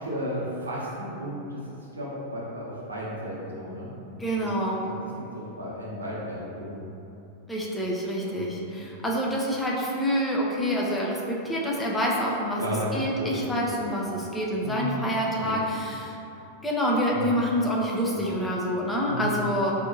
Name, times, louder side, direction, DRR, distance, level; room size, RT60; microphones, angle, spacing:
voice 1, 0.0-1.6 1.9-3.9 5.3-6.8 8.3-8.5 12.6-12.9 13.2-13.4 13.8-13.9 14.6-14.9 15.4-15.5 17.1-17.2 18.1-18.3 19.1-19.3, equal, 75° right, -6 dB, 0.8 m, -34 dB
voice 2, 4.2-4.9 7.5-16.2 16.6-19.7, equal, 10° left, -3 dB, 0.6 m, -27 dB
4.1 x 2.7 x 2.7 m, 2.8 s
figure-of-eight pair, 90°, 0 cm